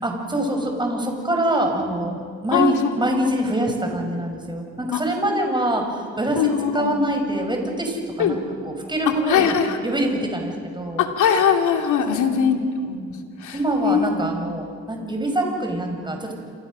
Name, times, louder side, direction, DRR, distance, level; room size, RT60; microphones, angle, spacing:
voice 1, 0.0-9.5 9.8-11.0 12.1-12.2 13.5-16.3, right 1 dB, 15° right, 3 dB, 5.5 m, -24 dB
voice 2, 6.4-6.9 8.2-8.4 9.3-9.8 11.0-13.0 13.4-13.6 13.8-14.0, left 7 dB, 80° left, 4 dB, 2.7 m, -20 dB
28.0 x 24.5 x 6.3 m, 2.2 s
cardioid pair, 90°, 30 cm